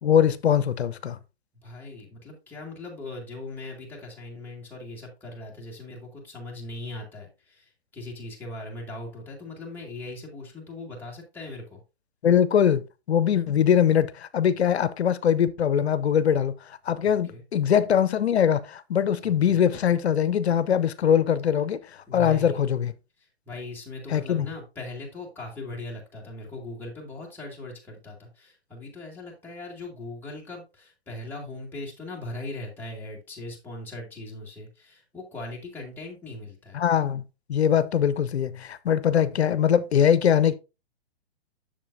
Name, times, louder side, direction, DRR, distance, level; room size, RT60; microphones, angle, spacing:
voice 1, 0.0-1.2 12.2-12.8 13.1-16.5 16.9-21.8 22.1-22.9 24.1-24.5 36.7-37.2 37.5-40.5, left 8 dB, 75° left, 0.7 m, -22 dB
voice 2, 1.6-11.8 17.0-17.4 19.2-19.6 22.1-22.6 23.2-36.8, left 2 dB, 5° left, 1.9 m, -39 dB
7.4 x 6.5 x 2.6 m
hypercardioid pair, 135°, 33 cm